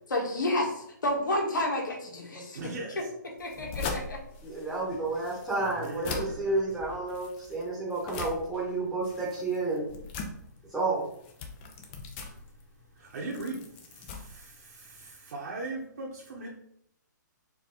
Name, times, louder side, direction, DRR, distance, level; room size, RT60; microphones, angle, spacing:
voice 1, 0.1-2.6 3.4-4.2, left 1 dB, 80° left, 1 dB, 1.5 m, -30 dB
voice 2, 2.5-3.1 5.6-6.8 13.0-13.6 13.9-16.5, right 2 dB, 60° right, -4 dB, 1.1 m, -39 dB
sound 1, 3.4-15.1, left 4 dB, 30° left, 0.7 m, -41 dB
voice 3, 4.4-9.9 10.7-11.0, right 2 dB, ahead, -6 dB, 1.2 m, -31 dB
4.6 x 2.7 x 3.9 m, 0.72 s
hypercardioid pair, 145°, 10 cm